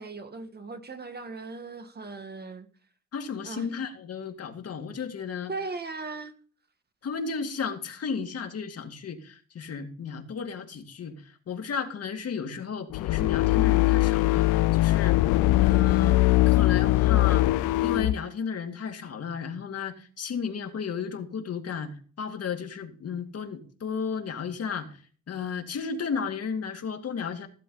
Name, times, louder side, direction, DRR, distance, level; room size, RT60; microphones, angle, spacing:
voice 1, 0.0-2.7 3.4-3.7 5.5-6.3, right 3 dB, 35° right, 1.6 m, -38 dB
voice 2, 3.1-5.5 7.0-17.5 17.8-24.9 25.3-27.5, left 6 dB, 55° left, 2.2 m, -34 dB
sound 1, 12.9-18.1, left 18 dB, 90° left, 0.5 m, -21 dB
15.5 x 7.7 x 4.0 m
cardioid pair, 90°, 30 cm